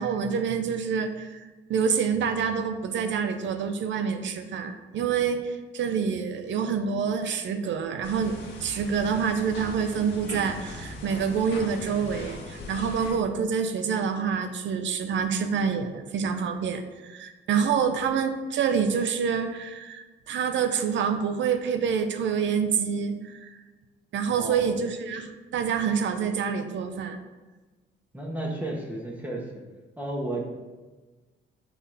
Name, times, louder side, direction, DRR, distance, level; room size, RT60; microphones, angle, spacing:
voice 1, 0.0-1.4 1.7-23.5 24.1-27.2, right 6 dB, 70° right, 8 dB, 0.7 m, -27 dB
sound 1, 8.0-13.1, left 2 dB, 65° left, 1.6 m, -40 dB
voice 2, 24.3-24.7 28.1-29.5 30.0-30.5, right 1 dB, 10° right, -3 dB, 1.5 m, -33 dB
5.7 x 4.3 x 5.5 m, 1.2 s
cardioid pair, 90°, 20 cm